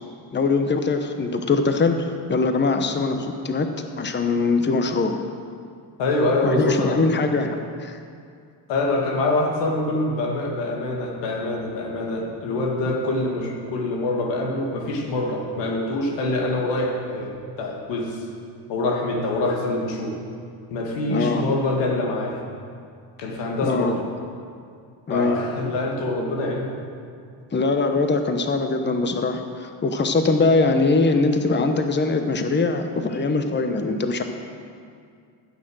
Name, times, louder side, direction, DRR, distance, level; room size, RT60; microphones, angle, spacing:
voice 1, 0.3-3.7 4.0-5.1 6.4-8.0 21.1-21.4 23.6-23.9 25.1-25.4 27.5-34.2, left 3 dB, 25° left, 6 dB, 1.0 m, -22 dB
voice 2, 6.0-7.1 8.7-18.2 18.7-20.2 20.7-22.4 23.2-24.0 25.1-26.8 33.1-33.2, left 2 dB, 90° left, 1 dB, 1.8 m, -25 dB
15.0 x 6.6 x 6.3 m, 2.3 s
supercardioid pair, 75°, 42 cm